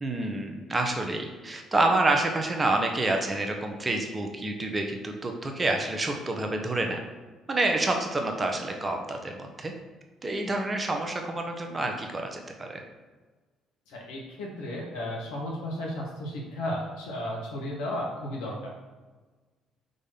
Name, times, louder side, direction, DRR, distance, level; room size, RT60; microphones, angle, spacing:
voice 1, 0.0-7.0 7.5-9.7 10.2-12.8, right 2 dB, 25° right, 3 dB, 1.1 m, -28 dB
voice 2, 13.9-18.7, left 1 dB, 70° left, -2 dB, 1.6 m, -34 dB
4.8 x 4.1 x 5.7 m, 1.3 s
figure-of-eight pair, 50°, 0 cm